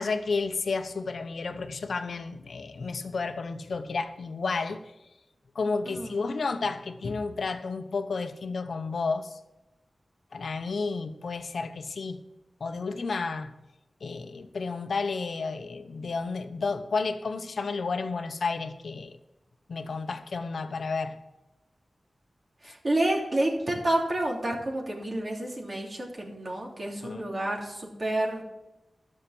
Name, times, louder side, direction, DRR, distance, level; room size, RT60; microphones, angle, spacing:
voice 1, 0.0-4.8 5.5-9.4 10.3-12.2 12.6-13.5 14.0-19.2 19.7-21.2 27.0-27.4, left 4 dB, 80° left, 0.9 m, -31 dB
voice 2, 5.9-6.2 22.6-28.4, right 1 dB, 45° right, 3.2 m, -29 dB
12.5 x 6.6 x 7.8 m
wide cardioid pair, 80°, 0 cm